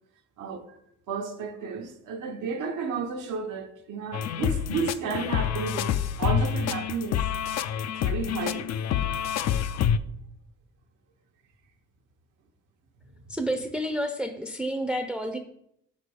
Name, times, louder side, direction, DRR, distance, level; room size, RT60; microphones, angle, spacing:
voice 1, 0.4-0.8 1.1-5.9 6.2-7.3 7.9-8.7 13.3-13.4, right 5 dB, 85° right, 0.9 m, -32 dB
sound 1, 4.1-10.0, left 8 dB, 60° left, 0.4 m, -27 dB
voice 2, 13.3-15.4, right 1 dB, 5° right, 0.5 m, -30 dB
5.9 x 4.1 x 4.8 m
cardioid pair, 90°, 30 cm